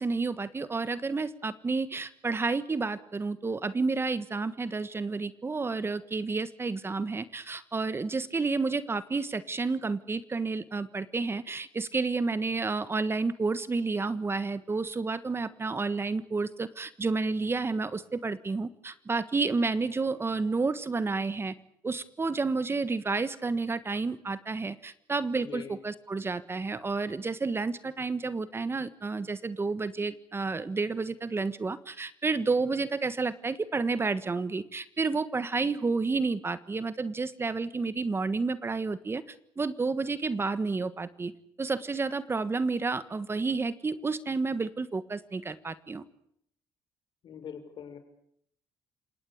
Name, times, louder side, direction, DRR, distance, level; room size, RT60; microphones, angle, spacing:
voice 1, 0.0-21.5 21.8-39.2 39.6-41.3 41.6-46.0, right 4 dB, 25° right, 14 dB, 1.5 m, -30 dB
voice 2, 25.3-25.8 47.2-48.0, left 7 dB, 60° left, 8 dB, 6.0 m, -42 dB
29.0 x 18.5 x 8.6 m, 0.71 s
cardioid pair, 90°, 9 cm